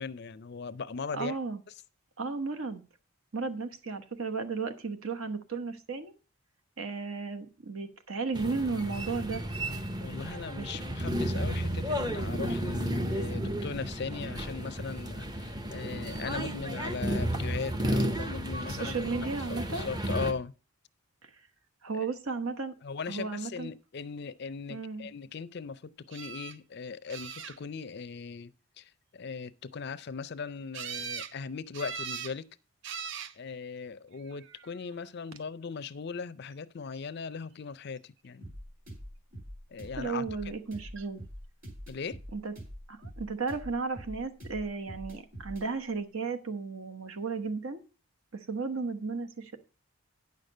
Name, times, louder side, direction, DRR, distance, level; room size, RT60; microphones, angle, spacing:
voice 1, 0.0-1.4 10.0-20.5 21.9-22.1 22.8-32.5 33.4-38.6 39.7-40.5 41.9-42.2, left 5 dB, 50° left, 0.4 m, -39 dB
voice 2, 1.1-1.6 2.2-2.8 3.3-6.1 6.8-9.4 10.6-10.7 18.6-19.9 21.8-22.7 23.1-23.7 24.7-25.1 39.9-41.2 42.3-42.5 42.9-47.8 48.3-49.6, right 4 dB, 70° right, 1.1 m, -34 dB
sound 1, 8.3-20.3, equal, 20° right, 0.7 m, -33 dB
sound 2, 26.1-26.6 27.1-27.8 30.7-31.3 31.7-32.4 32.8-33.3 34.3-34.7 41.0-41.1 41.4-41.5, right 7 dB, 55° right, 0.5 m, -40 dB
sound 3, 38.4-45.7, equal, 40° right, 3.2 m, -45 dB
9.6 x 6.6 x 5.3 m
head